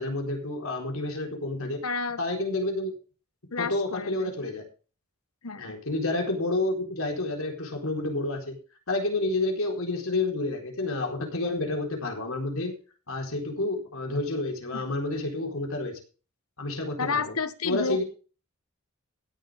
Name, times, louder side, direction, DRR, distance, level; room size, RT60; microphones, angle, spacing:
voice 1, 0.0-1.8 2.2-2.9 3.6-4.7 5.6-8.6 8.9-12.8 13.1-16.0 16.6-17.2 17.6-18.0, left 2 dB, 70° left, 2 dB, 4.2 m, -29 dB
voice 2, 1.8-2.2 3.5-4.2 5.4-5.8 14.7-14.8 17.0-18.0, left 4 dB, 85° left, 12 dB, 1.4 m, -30 dB
16.5 x 11.0 x 3.6 m, 0.36 s
head